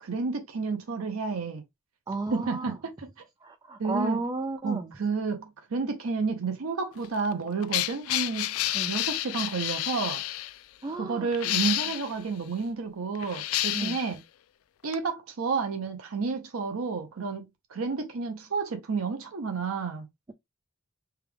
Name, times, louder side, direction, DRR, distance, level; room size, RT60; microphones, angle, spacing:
voice 1, 0.0-1.6 2.3-2.9 3.8-4.2 4.6-8.5 8.8-10.2 11.0-14.2 14.8-20.1, right 4 dB, 90° right, 0.7 m, -31 dB
voice 2, 2.1-2.8 3.4-4.9 8.7-8.9 10.8-11.3 13.7-14.0, right 3 dB, 20° right, 0.3 m, -33 dB
sound 1, 7.0-10.5 11.3-12.1 13.2-14.1 14.9-15.0, left 15 dB, 75° left, 0.3 m, -30 dB
3.5 x 2.3 x 3.3 m
head